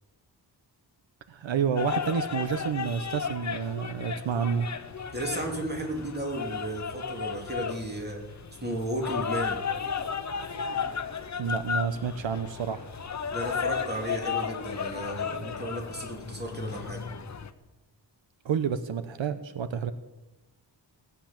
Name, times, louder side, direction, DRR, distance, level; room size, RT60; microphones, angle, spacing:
voice 1, 1.3-4.7 11.4-12.9 18.4-19.9, right 7 dB, 85° right, 12 dB, 1.0 m, -29 dB
sound 1, 1.8-17.5, left 6 dB, 40° left, 0.9 m, -34 dB
voice 2, 5.1-9.6 13.3-17.1, right 1 dB, 20° right, 1 dB, 2.9 m, -34 dB
18.0 x 9.8 x 7.3 m, 1.0 s
wide cardioid pair, 165°, 44 cm